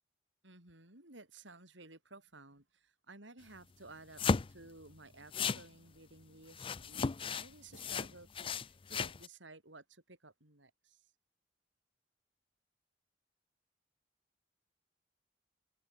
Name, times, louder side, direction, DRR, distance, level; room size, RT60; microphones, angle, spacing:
voice 1, 0.4-4.2 4.5-11.0, right 2 dB, 85° right, 6.6 m, -55 dB
sound 1, 4.2-4.7 5.3-5.6 6.5-7.5 7.7-9.3, left 5 dB, 30° left, 0.4 m, -35 dB
head